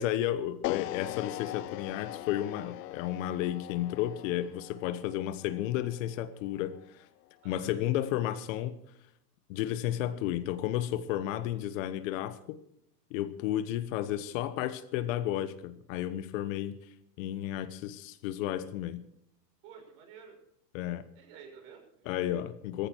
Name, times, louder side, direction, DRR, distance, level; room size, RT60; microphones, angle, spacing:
voice 1, 0.0-6.7 7.4-8.8 9.5-12.6 13.1-16.8 17.2-19.1 20.7-21.1 22.0-22.9, left 12 dB, 50° left, 1.2 m, -32 dB
sound 1, 0.6-6.8, left 16 dB, 75° left, 0.7 m, -41 dB
voice 2, 7.4-8.0 11.5-11.6 19.6-20.4 21.1-22.4, right 6 dB, 50° right, 6.2 m, -52 dB
16.5 x 15.0 x 4.6 m
supercardioid pair, 130°, 48 cm